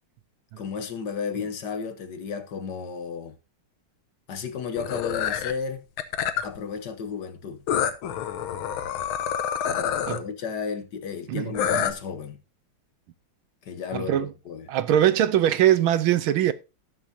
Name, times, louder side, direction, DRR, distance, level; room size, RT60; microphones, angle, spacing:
voice 1, 0.6-3.3 4.3-5.8 6.4-7.6 9.6-12.4 13.6-14.7, left 6 dB, 55° left, 1.6 m, -33 dB
sound 1, 4.8-5.5 6.0-6.6 7.7-10.2 11.6-11.9, left 9 dB, 80° left, 1.7 m, -27 dB
voice 2, 11.3-11.9 13.9-14.3 14.7-16.5, right 11 dB, 80° right, 1.5 m, -22 dB
18.5 x 7.2 x 2.7 m
omnidirectional pair, 2.3 m